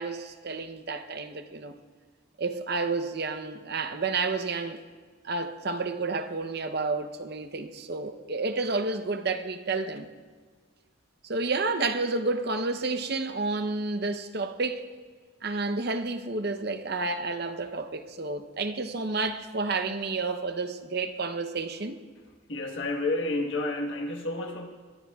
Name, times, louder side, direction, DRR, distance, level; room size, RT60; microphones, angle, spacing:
voice 1, 0.0-1.8 2.4-4.8 5.2-10.1 11.2-14.8 15.4-22.0, right 3 dB, 50° right, 0.8 m, -30 dB
voice 2, 22.5-24.7, left 2 dB, 65° left, 1.4 m, -30 dB
23.0 x 22.0 x 2.4 m
head